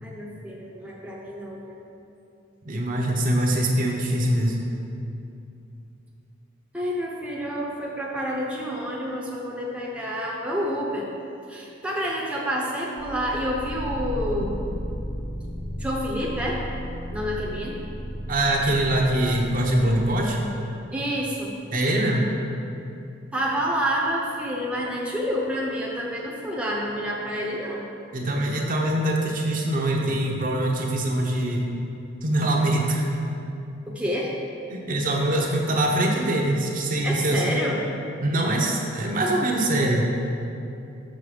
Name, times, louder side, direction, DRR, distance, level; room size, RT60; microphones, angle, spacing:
voice 1, 0.0-1.7 6.7-11.1 11.5-14.6 15.8-16.6 17.1-17.8 20.9-21.5 23.3-27.9 33.9-34.3 37.0-37.8, equal, 5° right, -3 dB, 0.7 m, -28 dB
voice 2, 2.6-4.6 18.3-20.4 21.7-22.3 28.1-31.7 32.2-33.1 34.7-37.5 38.2-40.1, right 1 dB, 40° right, -1 dB, 0.8 m, -23 dB
sound 1, 13.0-20.8, equal, 70° left, 1.1 m, -34 dB
6.4 x 6.4 x 4.9 m, 2.7 s
head